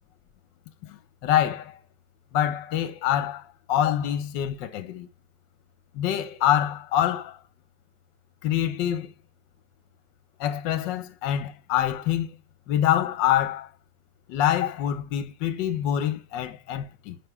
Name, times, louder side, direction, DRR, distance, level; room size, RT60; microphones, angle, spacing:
voice 1, 0.9-1.8 2.3-3.4 3.7-5.1 5.9-7.4 8.4-9.1 10.4-12.3 12.7-13.7 14.3-17.2, left 11 dB, 70° left, 1.3 m, -25 dB
10.5 x 3.7 x 4.7 m
omnidirectional pair, 2.3 m